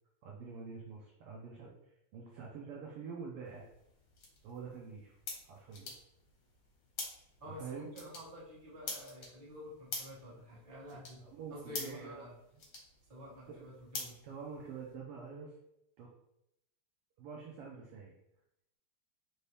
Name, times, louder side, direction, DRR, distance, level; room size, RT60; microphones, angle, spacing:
voice 1, 0.2-3.7 4.4-5.1 5.5-5.9 7.5-7.9 11.2-12.3 13.5-13.6 14.2-15.6 16.0-16.1 17.2-18.1, right 5 dB, 85° right, -2 dB, 1.2 m, -46 dB
sound 1, 3.4-14.9, left 3 dB, 70° left, 1.0 m, -48 dB
voice 2, 7.4-11.2 11.5-12.3 13.1-14.2, equal, 35° right, -7 dB, 0.5 m, -49 dB
4.5 x 2.8 x 3.3 m, 0.81 s
omnidirectional pair, 3.3 m